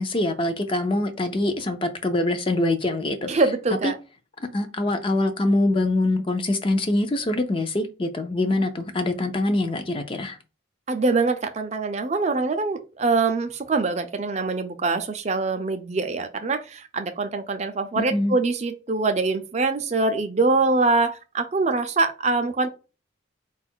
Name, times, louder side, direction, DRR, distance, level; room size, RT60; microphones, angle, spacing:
voice 1, 0.0-3.4 3.8-3.9 4.4-10.4 18.0-18.3, left 2 dB, 25° left, 0.5 m, -24 dB
voice 2, 3.3-4.0 10.9-22.7, right 3 dB, 35° right, 0.4 m, -24 dB
4.5 x 2.4 x 4.3 m
head